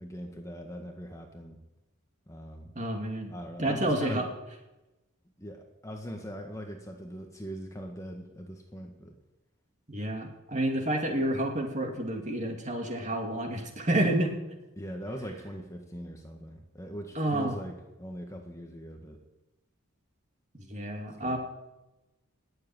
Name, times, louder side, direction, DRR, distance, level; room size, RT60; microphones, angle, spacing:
voice 1, 0.0-1.6 2.3-2.7 3.3-4.3 5.4-9.1 14.8-19.2 21.2-21.4, equal, 15° left, 2 dB, 1.6 m, -41 dB
voice 2, 2.8-3.3 3.6-4.2 9.9-14.3 17.1-17.5 20.5-21.4, right 1 dB, 35° right, 3 dB, 2.6 m, -29 dB
19.5 x 7.8 x 9.1 m, 1.0 s
head